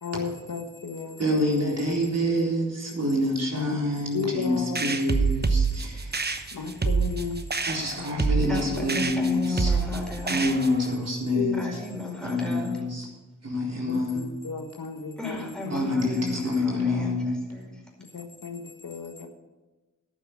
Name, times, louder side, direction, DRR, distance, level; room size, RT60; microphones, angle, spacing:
voice 1, 0.0-2.3 3.5-3.8 4.1-4.8 6.5-7.5 8.1-8.5 8.8-8.9 9.7-9.8 11.4-11.6 13.9-15.9 18.1-19.3, left 5 dB, 75° left, 5 dB, 1.4 m, -34 dB
voice 2, 1.2-6.2 7.7-9.8 10.3-11.8 12.2-13.1 13.4-14.2 15.7-17.3, left 1 dB, 50° right, -2 dB, 3.9 m, -27 dB
sound 1, 4.8-10.9, right 4 dB, 30° right, 1.0 m, -27 dB
voice 3, 8.5-10.5 11.5-12.8 15.2-17.7, left 2 dB, ahead, -2 dB, 5.1 m, -34 dB
11.5 x 9.0 x 6.6 m, 1.2 s
wide cardioid pair, 70°, 32 cm